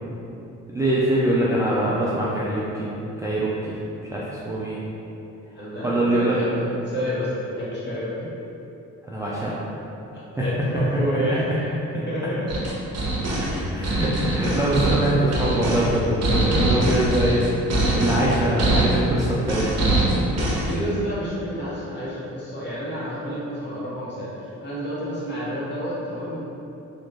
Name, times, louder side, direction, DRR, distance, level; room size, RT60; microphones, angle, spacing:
voice 1, 0.7-2.9 3.2-3.8 4.1-4.8 5.8-6.4 9.1-9.6 10.4-10.5 13.6-17.5 17.7-19.7, right 1 dB, 10° right, -7 dB, 0.4 m, -23 dB
voice 2, 5.5-8.3 10.1-12.5 20.5-26.4, equal, 35° left, -10 dB, 1.4 m, -29 dB
sound 1, 12.5-20.7, right 1 dB, 55° right, 0.8 m, -23 dB
3.0 x 2.5 x 3.6 m, 2.9 s
cardioid pair, 90°, 30 cm